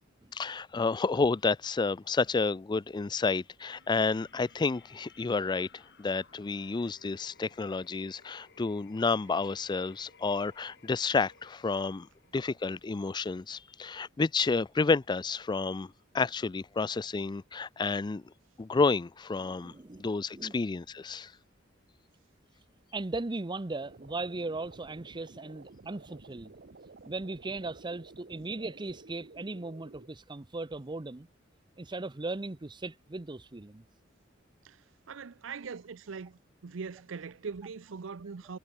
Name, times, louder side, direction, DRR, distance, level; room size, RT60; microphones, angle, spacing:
voice 1, 0.3-12.1 12.3-18.2 18.6-19.7 20.0-21.3, left 4 dB, 20° left, 0.4 m, -30 dB
sound 1, 3.7-12.7, left 5 dB, 60° left, 2.1 m, -61 dB
voice 2, 19.4-20.0 20.3-20.6 22.9-26.5 27.0-31.3 31.8-33.8, right 2 dB, 25° right, 0.7 m, -38 dB
sound 2, 23.8-30.1, right 3 dB, 55° right, 1.0 m, -52 dB
voice 3, 34.6-38.6, right 5 dB, 80° right, 0.6 m, -42 dB
head